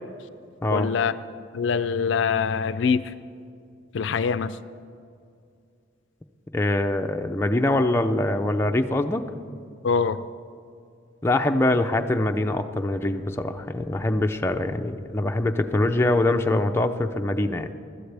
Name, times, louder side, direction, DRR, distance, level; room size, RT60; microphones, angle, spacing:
voice 1, 0.7-1.1 1.5-3.1 3.9-4.6 9.8-10.2, left 6 dB, 65° left, 13 dB, 0.4 m, -24 dB
voice 2, 6.5-9.3 11.2-17.7, left 1 dB, 15° left, 4 dB, 0.5 m, -23 dB
21.0 x 13.0 x 3.4 m, 2.4 s
head